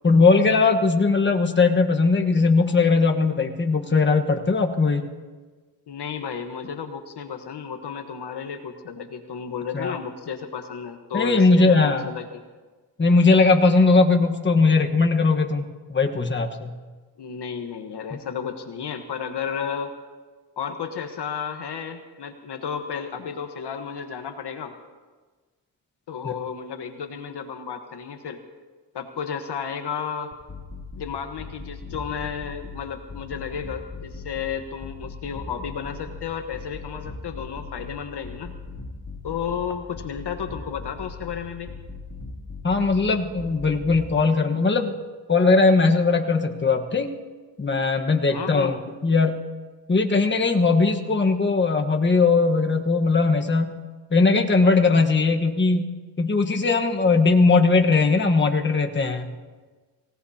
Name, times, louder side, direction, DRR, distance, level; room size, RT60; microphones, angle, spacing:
voice 1, 0.0-5.1 9.7-10.0 11.1-12.1 13.0-16.8 18.1-18.2 26.2-26.3 42.6-45.0 45.3-47.1 47.6-48.8 49.0-49.4 49.9-53.8 54.1-55.9 56.2-59.3, left 3 dB, 25° left, 4 dB, 1.4 m, -19 dB
voice 2, 5.9-12.4 17.2-19.9 20.6-24.7 26.1-28.4 28.9-30.4 31.0-38.5 39.2-41.7 48.3-48.7, left 7 dB, 65° left, 7 dB, 1.3 m, -32 dB
sound 1, 30.3-31.1 31.4-32.8 33.1-34.5 34.8-36.2 36.5-37.9 38.2-39.6 39.9-41.3 41.7-43.1 43.4-44.0, left 3 dB, 45° left, 3.0 m, -38 dB
24.5 x 17.5 x 2.9 m, 1.4 s
cardioid pair, 70°, 44 cm